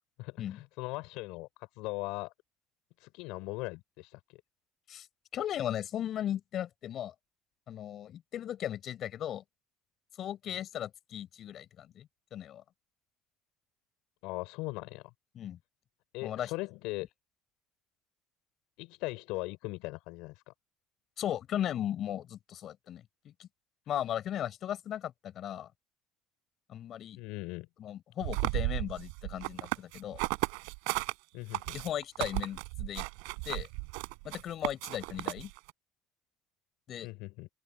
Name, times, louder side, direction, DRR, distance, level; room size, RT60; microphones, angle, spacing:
voice 1, 0.2-2.3 3.0-4.4 10.5-10.6 14.2-15.1 16.1-17.1 18.8-20.5 27.2-27.7 31.3-31.8 37.0-37.5, left 23 dB, 80° left, 5.0 m, -39 dB
voice 2, 5.3-7.1 7.7-9.4 10.2-12.6 15.3-15.6 16.2-16.5 21.2-23.5 23.9-25.7 26.7-27.2 27.8-30.2 31.7-33.0 33.4-33.7 34.2-35.5 36.9-37.1, left 11 dB, 55° left, 4.8 m, -37 dB
sound 1, 28.2-31.1 31.5-35.7, right 37 dB, 85° right, 5.0 m, -34 dB
open air
supercardioid pair, 100°, 0 cm